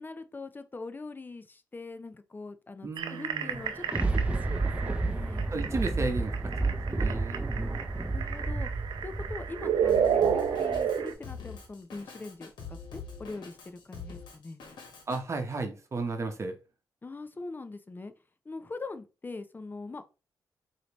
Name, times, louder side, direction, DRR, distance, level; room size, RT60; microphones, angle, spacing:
voice 1, 0.0-5.5 7.6-7.7 8.0-8.7 9.0-14.6 17.0-18.1 18.5-20.0, left 3 dB, 25° left, 0.5 m, -42 dB
voice 2, 2.8-3.6 5.5-6.3 6.6-7.8 15.1-16.6, right 3 dB, 40° right, 0.9 m, -34 dB
sound 1, 3.0-11.1, right 8 dB, 85° right, 0.5 m, -31 dB
Thunder, 3.5-11.0 11.5-11.6, right 3 dB, 15° right, 0.6 m, -31 dB
Drum kit, 9.9-15.2, left 5 dB, 80° left, 1.2 m, -44 dB
4.8 x 2.8 x 3.0 m
cardioid pair, 80°, 7 cm